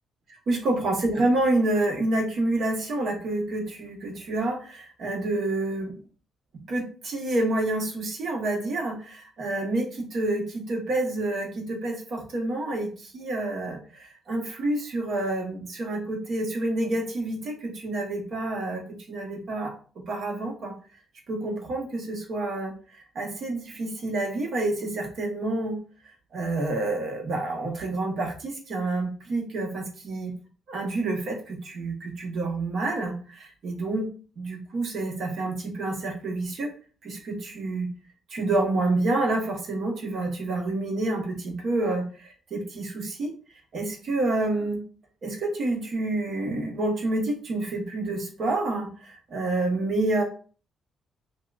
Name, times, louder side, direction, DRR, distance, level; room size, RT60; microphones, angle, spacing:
voice 1, 0.5-5.9 6.5-19.7 20.1-20.7 21.3-22.8 23.1-25.8 26.3-30.3 30.7-34.1 34.4-36.7 37.0-37.9 38.3-43.3 43.7-44.8 45.2-50.2, right 2 dB, 60° right, 1 dB, 1.1 m, -28 dB
5.5 x 2.1 x 2.4 m, 0.39 s
cardioid pair, 90°, 0 cm